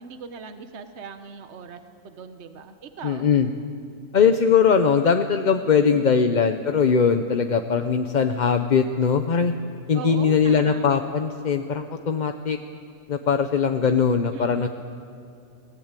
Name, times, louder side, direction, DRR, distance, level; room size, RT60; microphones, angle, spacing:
voice 1, 0.0-3.3 5.8-6.1 9.9-10.9 14.0-14.7, right 5 dB, 55° right, 8 dB, 1.3 m, -40 dB
voice 2, 3.0-3.5 4.1-9.5 9.9-12.6 13.1-14.7, left 6 dB, 40° left, 7 dB, 0.8 m, -20 dB
24.0 x 18.0 x 9.0 m, 2.7 s
omnidirectional pair, 1.4 m